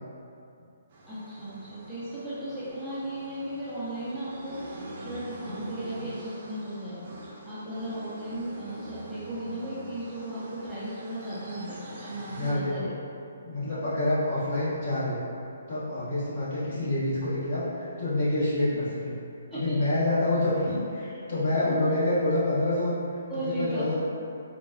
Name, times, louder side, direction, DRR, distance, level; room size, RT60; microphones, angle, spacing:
sound 1, 0.9-12.5, right 1 dB, 45° right, 0.6 m, -44 dB
voice 1, 1.1-12.9 19.5-19.8 21.0-21.2 23.3-23.9, right 1 dB, ahead, -15 dB, 0.7 m, -36 dB
voice 2, 12.3-12.9 13.4-15.2 15.7-19.1 19.5-23.0 23.4-24.0, left 1 dB, 50° left, -11 dB, 1.4 m, -27 dB
3.9 x 2.2 x 2.6 m, 2.6 s
figure-of-eight pair, 140°, 0 cm